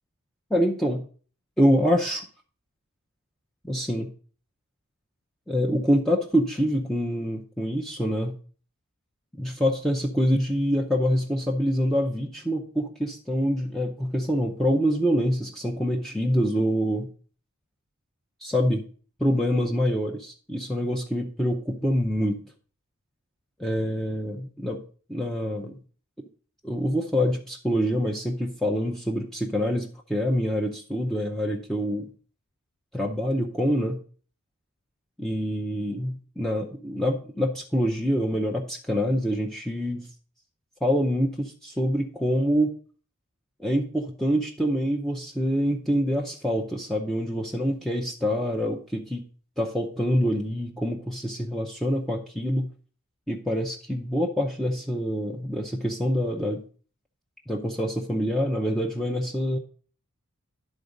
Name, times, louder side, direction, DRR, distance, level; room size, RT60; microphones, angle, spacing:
voice 1, 0.5-1.1 1.6-2.2 3.6-4.1 5.5-8.4 9.4-17.1 18.4-18.8 19.2-22.4 23.6-24.8 25.1-25.8 26.6-32.1 32.9-34.0 35.2-40.1 40.8-42.7 43.6-49.2 49.6-52.7 53.3-56.6 57.5-59.6, equal, ahead, -1 dB, 0.6 m, -26 dB
10.5 x 3.9 x 5.2 m, 0.42 s
head